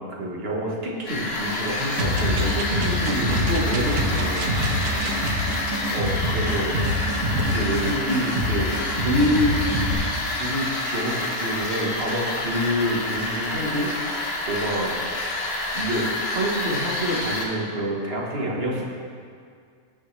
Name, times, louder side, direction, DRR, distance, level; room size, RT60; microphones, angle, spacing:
voice 1, 0.0-4.5 5.9-6.7 7.5-9.6 10.3-13.9 14.5-15.4 15.7-18.8, equal, 45° right, -2 dB, 1.7 m, -27 dB
sound 1, 1.1-17.5, left 2 dB, 45° left, 1.5 m, -28 dB
sound 2, 1.9-5.6 6.1-6.2, right 4 dB, 90° right, 1.3 m, -35 dB
sound 3, 2.0-9.9, equal, 65° right, 2.3 m, -25 dB
18.0 x 6.3 x 3.3 m, 2.2 s
omnidirectional pair, 1.6 m